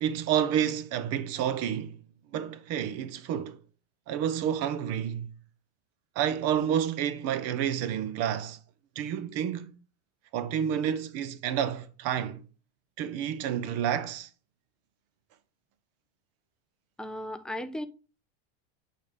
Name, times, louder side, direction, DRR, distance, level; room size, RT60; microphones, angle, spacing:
voice 1, 0.0-2.0 2.3-3.6 4.1-5.3 6.2-8.6 9.0-9.7 10.3-12.4 13.0-14.3, right 9 dB, 55° right, 0.8 m, -29 dB
voice 2, 17.0-17.9, left 1 dB, 5° left, 0.4 m, -35 dB
8.3 x 3.7 x 3.5 m
supercardioid pair, 130°, 30 cm